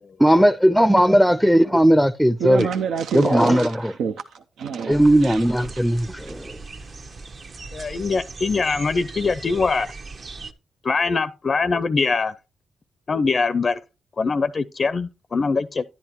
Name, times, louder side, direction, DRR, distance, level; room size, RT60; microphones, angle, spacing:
voice 1, 0.2-2.7 3.1-3.9 4.9-6.6, equal, ahead, 0.5 m, -17 dB
voice 2, 2.4-5.7, right 6 dB, 80° right, 0.6 m, -28 dB
sound 1, 4.9-10.5, right 3 dB, 55° right, 1.1 m, -38 dB
voice 3, 7.7-9.9 10.8-12.3 13.1-13.8 14.2-15.8, left 4 dB, 45° left, 0.5 m, -22 dB
10.5 x 9.9 x 2.9 m
supercardioid pair, 55°, 0 cm